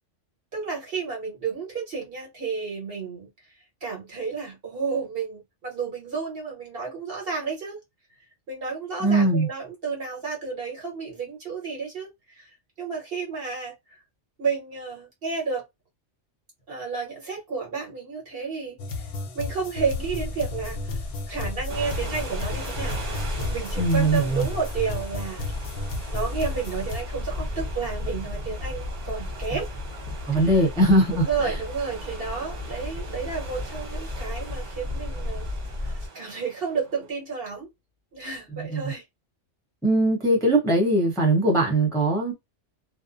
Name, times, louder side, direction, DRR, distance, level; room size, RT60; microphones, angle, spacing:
voice 1, 0.5-3.3 3.8-7.8 8.5-12.5 12.8-14.0 14.4-15.7 16.7-19.1 19.3-21.0 21.3-23.1 23.5-25.5 26.1-29.7 30.3-30.5 31.1-35.5 35.8-37.7 38.1-39.0, right 5 dB, 50° right, 1.2 m, -31 dB
voice 2, 9.0-9.5 23.8-24.5 30.3-31.5 38.5-38.9 39.8-42.3, right 1 dB, 5° left, 0.6 m, -21 dB
sound 1, 18.8-27.0, left 3 dB, 60° left, 0.7 m, -34 dB
sound 2, 19.8-36.1, left 2 dB, 30° right, 0.9 m, -34 dB
sound 3, 21.7-37.1, right 4 dB, 75° right, 1.4 m, -42 dB
2.5 x 2.0 x 2.4 m
omnidirectional pair, 1.3 m